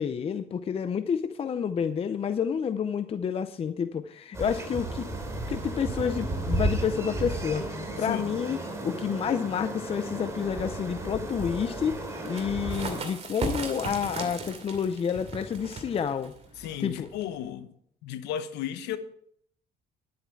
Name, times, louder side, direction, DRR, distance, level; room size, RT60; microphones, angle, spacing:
voice 1, 0.0-5.1 5.5-8.6 8.8-16.3 16.8-17.1, left 7 dB, 35° left, 0.6 m, -29 dB
sound 1, 4.3-13.0, right 1 dB, 15° right, 2.7 m, -33 dB
sound 2, 12.1-17.5, right 3 dB, 40° right, 2.5 m, -37 dB
voice 2, 16.6-17.7 18.0-19.0, left 10 dB, 90° left, 1.0 m, -34 dB
10.5 x 9.2 x 4.6 m
cardioid pair, 110°, 17 cm